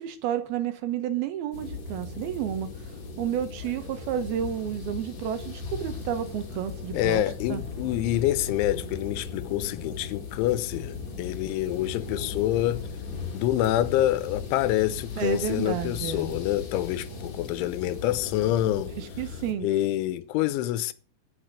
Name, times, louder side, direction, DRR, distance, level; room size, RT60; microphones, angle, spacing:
voice 1, 0.0-2.7 3.2-7.2 7.5-7.6 15.2-16.3 18.9-19.7, right 9 dB, 70° right, 2.7 m, -31 dB
sound 1, 1.5-19.5, left 5 dB, 40° left, 3.5 m, -38 dB
voice 2, 6.9-12.9 13.3-18.9 19.6-20.9, left 14 dB, 90° left, 3.3 m, -27 dB
16.5 x 6.5 x 6.4 m
omnidirectional pair, 5.4 m